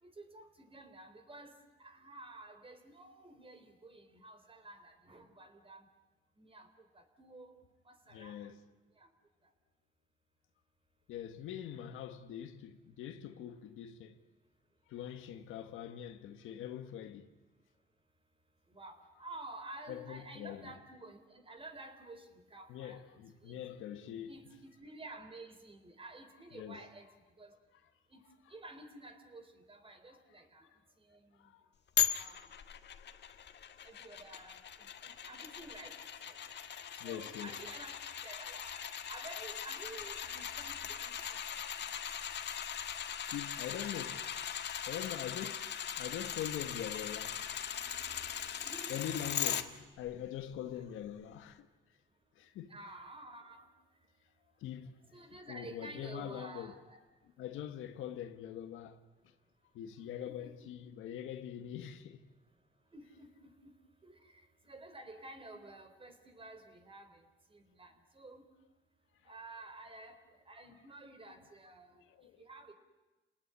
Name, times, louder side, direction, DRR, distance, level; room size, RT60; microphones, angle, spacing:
voice 1, 0.0-5.8 6.4-8.5 9.0-9.1 18.7-23.6 24.3-27.1 27.4-27.5 28.1-28.2 28.5-30.7 31.0-31.4 32.2-32.5 33.8-36.4 36.7-38.0 38.2-38.8 39.1-41.6 48.6-49.0 50.7-50.8 52.7-53.7 55.1-57.0 60.2-60.5 62.9-63.5 64.0-64.4 64.7-67.2 67.5-68.4 69.2-70.2 70.5-72.0 72.4-72.7, right 2 dB, 25° right, 4.0 m, -51 dB
voice 2, 8.1-8.6 11.1-14.2 14.9-17.3 19.9-20.7 22.7-24.4 26.5-26.8 30.1-30.2 30.6-30.7 31.4-31.7 37.0-37.6 43.3-44.2 44.6-47.6 48.9-51.7 52.4-52.8 54.6-55.0 55.5-56.7 57.4-59.0 59.7-62.3 72.1-72.4, left 10 dB, 90° left, 1.6 m, -43 dB
sound 1, 32.0-49.6 50.1-50.2, left 9 dB, 60° left, 1.7 m, -39 dB
29.5 x 19.0 x 9.9 m
cardioid pair, 90°, 20 cm